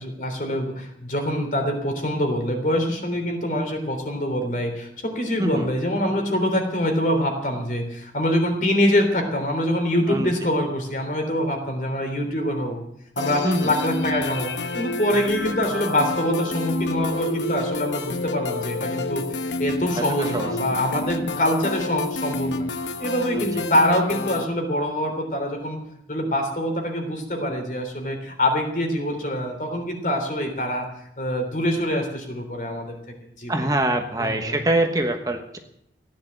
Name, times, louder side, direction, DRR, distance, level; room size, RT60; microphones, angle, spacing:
voice 1, 0.0-12.8 13.2-22.6 23.0-25.8 26.1-30.8 31.2-32.9 33.4-33.7 34.2-34.6, left 1 dB, 45° left, 4 dB, 3.4 m, -25 dB
sound 1, 13.2-24.4, left 2 dB, 90° left, 0.9 m, -29 dB
voice 2, 20.2-20.5 23.4-23.7 33.5-35.6, right 1 dB, 20° right, 5 dB, 1.1 m, -24 dB
16.5 x 10.5 x 7.8 m, 0.76 s
head